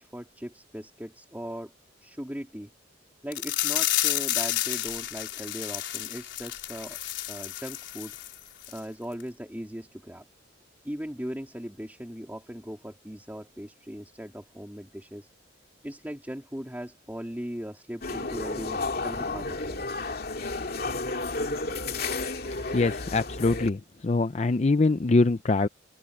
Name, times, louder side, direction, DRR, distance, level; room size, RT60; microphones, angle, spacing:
voice 1, 0.0-1.7 2.0-2.7 3.2-7.0 7.3-8.2 8.7-10.2 10.8-15.3 15.8-19.8, equal, 10° right, 3.2 m, -39 dB
sound 1, 3.3-8.3 8.6-8.8 9.2-9.3, left 13 dB, 75° left, 4.7 m, -30 dB
sound 2, 18.0-23.7, left 3 dB, 55° left, 2.5 m, -32 dB
voice 2, 22.7-25.7, left 3 dB, 35° left, 0.5 m, -23 dB
open air
head